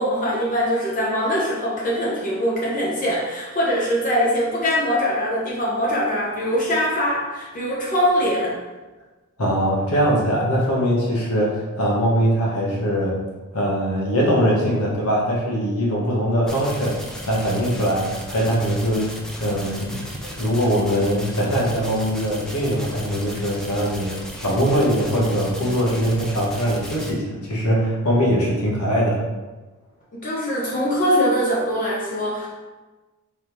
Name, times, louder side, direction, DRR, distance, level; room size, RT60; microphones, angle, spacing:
voice 1, 0.0-8.5 30.2-32.5, equal, 35° left, -5 dB, 0.8 m, -22 dB
voice 2, 9.4-13.1 13.5-17.0 17.3-19.1 19.4-20.0 20.4-24.1 24.4-29.2, equal, 85° left, -4 dB, 1.3 m, -21 dB
sound 1, 16.5-27.1, equal, 5° left, 0.4 m, -36 dB
3.6 x 3.2 x 4.5 m, 1.2 s
head